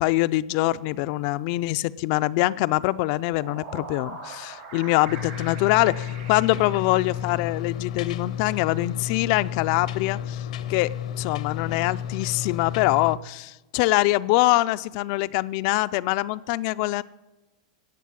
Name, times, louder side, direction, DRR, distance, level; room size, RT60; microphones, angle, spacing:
voice 1, 0.0-17.0, left 18 dB, 50° left, 14 dB, 0.4 m, -24 dB
sound 1, 3.1-7.5, right 3 dB, 75° right, 7.0 m, -42 dB
sound 2, 5.1-13.2, left 10 dB, 75° left, 0.7 m, -32 dB
16.0 x 7.9 x 8.5 m, 1.1 s
supercardioid pair, 140°, 4 cm